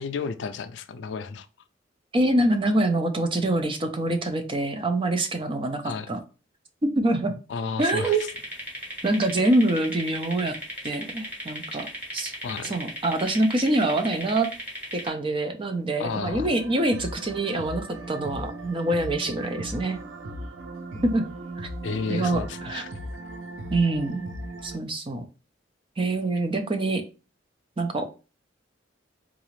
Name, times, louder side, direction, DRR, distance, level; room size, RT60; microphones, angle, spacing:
voice 1, 0.0-1.5 5.8-6.2 7.5-8.3 12.4-12.7 16.0-16.5 21.8-22.9, left 5 dB, 75° left, 10 dB, 0.4 m, -32 dB
voice 2, 2.1-6.2 6.8-7.3 7.8-8.2 9.0-10.5 10.8-12.3 12.6-14.5 14.9-20.0 21.0-21.3 21.6-22.8 23.7-24.3 24.6-25.2 26.0-27.0 27.8-28.1, right 2 dB, 30° right, 6 dB, 0.5 m, -25 dB
sound 1, 7.8-15.1, equal, 10° right, 1.1 m, -37 dB
sound 2, 16.0-24.8, right 1 dB, 85° right, 0.6 m, -37 dB
3.9 x 2.4 x 3.1 m, 0.33 s
head